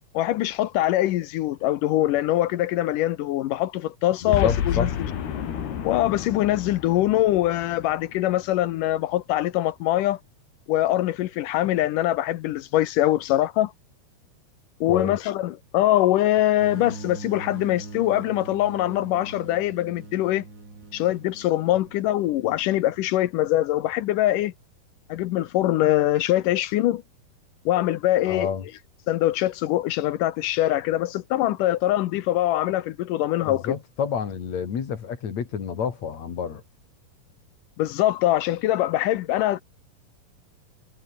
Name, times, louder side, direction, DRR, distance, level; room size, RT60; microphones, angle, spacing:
voice 1, 0.1-4.9 5.8-10.2 10.7-13.7 14.8-20.4 20.9-24.5 25.1-27.0 27.7-28.5 29.1-33.7 37.8-39.6, left 14 dB, 70° left, 2.1 m, -23 dB
voice 2, 4.2-4.9 14.9-15.2 28.3-28.6 33.4-36.6, left 7 dB, 50° left, 3.6 m, -29 dB
Boom, 4.3-8.7, left 8 dB, 90° left, 4.9 m, -31 dB
sound 1, 16.6-23.2, right 3 dB, 25° right, 5.7 m, -41 dB
omnidirectional pair, 4.5 m